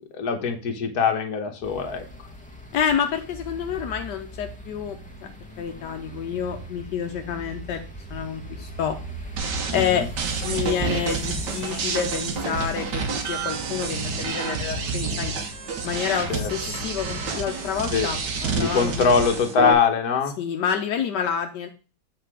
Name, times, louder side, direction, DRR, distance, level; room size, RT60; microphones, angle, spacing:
voice 1, 0.1-2.1 9.7-10.1 16.3-16.5 17.9-18.1 18.6-20.3, left 6 dB, 65° left, 5 dB, 1.6 m, -22 dB
sound 1, 1.6-19.4, right 1 dB, 5° left, 1.5 m, -39 dB
voice 2, 2.7-5.0 5.6-7.8 8.1-9.0 9.7-10.0 10.4-13.0 13.3-15.3 15.8-18.2 18.5-19.1 20.4-21.7, left 8 dB, 85° left, 4 dB, 1.4 m, -28 dB
sound 2, 9.4-19.7, right 5 dB, 80° right, 1.7 m, -29 dB
7.9 x 4.3 x 4.8 m, 0.34 s
omnidirectional pair, 1.8 m